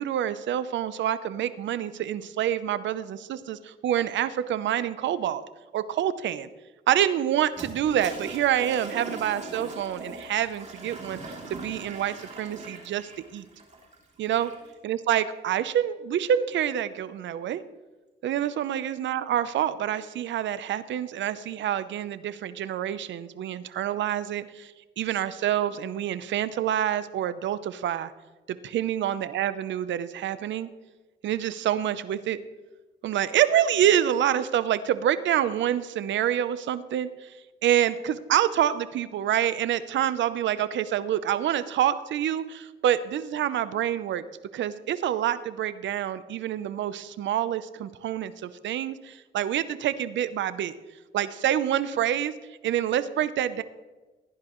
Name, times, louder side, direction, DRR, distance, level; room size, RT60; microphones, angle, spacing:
voice 1, 0.0-5.4 5.7-6.5 6.9-11.2 11.5-13.5 14.2-14.5 14.8-17.6 18.2-28.1 28.5-30.7 31.2-32.4 33.0-37.3 37.6-44.2 44.5-50.7 51.1-52.3 52.6-53.6, right 10 dB, 70° right, 14 dB, 0.7 m, -27 dB
Toilet flush, 7.5-14.7, right 2 dB, 35° right, 3.0 m, -41 dB
15.5 x 11.0 x 3.1 m, 1.2 s
cardioid pair, 90°, 20 cm